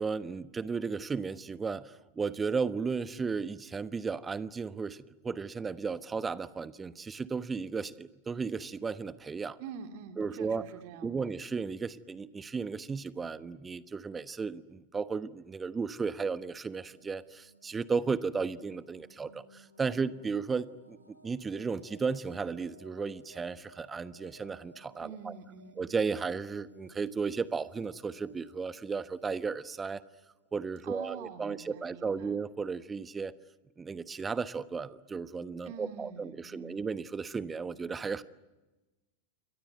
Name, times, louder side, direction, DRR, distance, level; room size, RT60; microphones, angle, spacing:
voice 1, 0.0-9.6 10.2-10.7 11.0-25.3 25.8-30.0 30.5-33.3 33.8-38.2, right 5 dB, 15° right, 15 dB, 1.1 m, -34 dB
voice 2, 9.6-11.3 25.0-25.8 30.8-32.4 35.6-36.8, right 7 dB, 45° right, 6 dB, 2.4 m, -46 dB
sound 1, 16.6-31.3, right 1 dB, 90° right, 3.5 m, -59 dB
29.0 x 24.0 x 8.0 m, 1.1 s
figure-of-eight pair, 90°, 0 cm